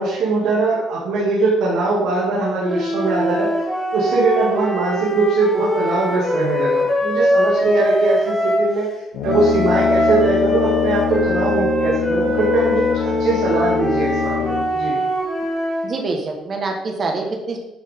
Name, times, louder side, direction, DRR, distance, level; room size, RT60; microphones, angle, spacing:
voice 1, 0.0-3.5 3.9-8.9 9.2-15.0, right 3 dB, 75° right, -6 dB, 2.1 m, -21 dB
sound 1, 2.6-8.7 9.3-15.9, equal, 10° left, 2.5 m, -22 dB
Brass instrument, 9.1-14.9, left 7 dB, 70° left, 0.9 m, -23 dB
voice 2, 15.8-17.6, right 3 dB, 30° right, 2 dB, 1.4 m, -25 dB
10.0 x 6.1 x 3.6 m, 0.98 s
cardioid pair, 150°, 0 cm